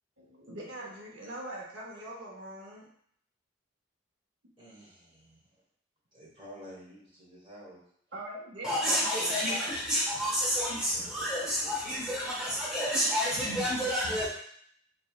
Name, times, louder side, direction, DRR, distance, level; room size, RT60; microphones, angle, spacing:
voice 1, 0.2-2.9 8.1-9.8, right 1 dB, 70° right, -2 dB, 0.8 m, -42 dB
voice 2, 4.6-5.5 6.1-7.8 8.1-8.2 10.9-11.3 11.6-12.2, equal, 25° right, -6 dB, 1.2 m, -51 dB
voice 3, 8.6-14.3, equal, 5° right, -7 dB, 0.7 m, -29 dB
4.1 x 3.2 x 2.3 m, 0.65 s
head